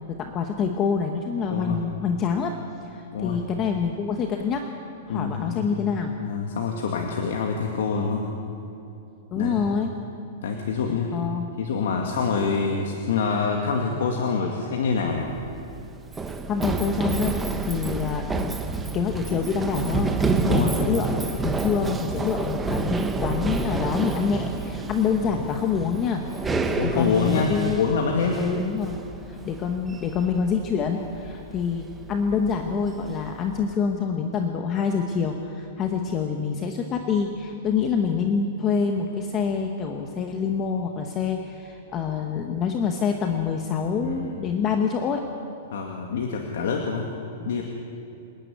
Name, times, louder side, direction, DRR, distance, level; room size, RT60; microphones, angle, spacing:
voice 1, 0.1-2.5 2.9-4.6 5.1-6.1 9.3-9.9 11.1-11.4 16.2-17.4 17.7-18.6 18.9-26.2 26.8-27.8 28.4-29.0 29.3-45.2, left 6 dB, 20° left, 4 dB, 1.1 m, -26 dB
voice 2, 1.5-1.8 3.1-3.4 5.1-5.8 6.2-8.3 9.4-9.7 10.4-11.2 11.6-15.3 20.4-20.8 26.7-28.4 44.0-44.3 45.7-47.1 47.4-47.6, left 5 dB, 70° left, 1 dB, 2.3 m, -26 dB
Run, 15.1-33.7, right 4 dB, 10° right, 0.9 m, -29 dB
27.0 x 10.5 x 9.5 m, 2.7 s
supercardioid pair, 170°, 0 cm